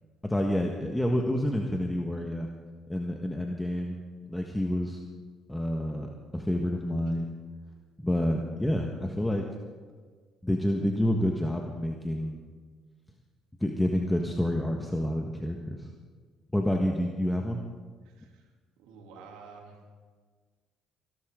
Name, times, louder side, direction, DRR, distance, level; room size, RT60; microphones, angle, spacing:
voice 1, 0.2-2.5 2.9-4.0 4.3-5.0 5.5-7.3 8.0-9.4 10.4-12.4 13.6-15.9 16.5-17.6, left 1 dB, 10° left, 1 dB, 1.5 m, -28 dB
voice 2, 18.0-18.5 18.8-19.8, right 5 dB, 85° right, 0 dB, 3.0 m, -50 dB
24.0 x 12.0 x 3.8 m, 1.5 s
supercardioid pair, 70°, 0 cm